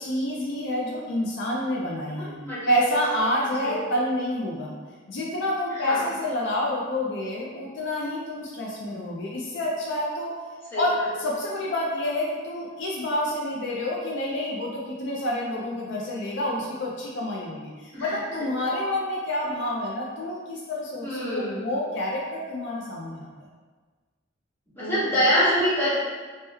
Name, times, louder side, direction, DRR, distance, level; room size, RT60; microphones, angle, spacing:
voice 1, 0.0-2.4 2.7-4.7 5.1-10.3 10.7-23.3 24.8-25.0, left 1 dB, 65° left, -3 dB, 0.4 m, -28 dB
voice 2, 2.2-3.0 3.5-3.8 5.7-6.0 10.7-11.1 17.9-18.1 21.0-21.6 24.7-25.9, equal, 10° left, -11 dB, 1.1 m, -25 dB
2.9 x 2.1 x 3.3 m, 1.4 s
head